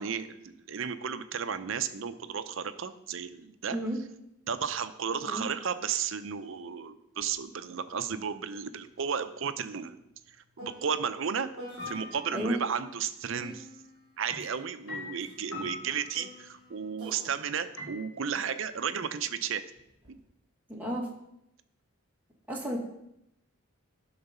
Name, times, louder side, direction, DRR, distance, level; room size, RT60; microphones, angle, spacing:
voice 1, 0.0-3.8 4.5-10.0 10.6-13.7 14.2-19.6 20.1-20.2, right 7 dB, 60° right, 11 dB, 0.5 m, -33 dB
sound 1, 7.2-7.4 7.7-12.4 13.4-18.9 19.8-20.2, equal, 25° right, 2.7 m, -51 dB
sound 2, 11.8-12.5 14.3-16.6 17.8-17.9, left 3 dB, 60° left, 2.3 m, -42 dB
voice 2, 20.7-21.1 22.5-22.8, equal, 10° right, -2 dB, 1.4 m, -32 dB
11.5 x 4.0 x 5.6 m, 0.82 s
head